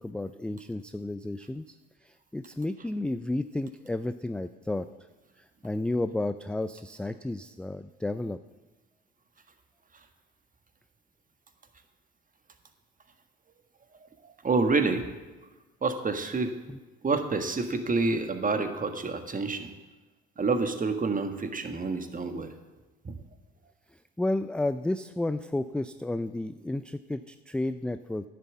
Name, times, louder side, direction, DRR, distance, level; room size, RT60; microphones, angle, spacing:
voice 1, 0.0-1.6 2.3-4.9 5.6-8.4 16.7-16.8 24.2-28.3, left 2 dB, 5° left, 11 dB, 0.3 m, -32 dB
voice 2, 14.2-15.0 15.8-16.5 17.0-19.7 20.4-22.5 23.0-23.2, right 3 dB, 30° right, 7 dB, 1.5 m, -28 dB
10.5 x 7.6 x 7.2 m, 1.2 s
hypercardioid pair, 65°, 29 cm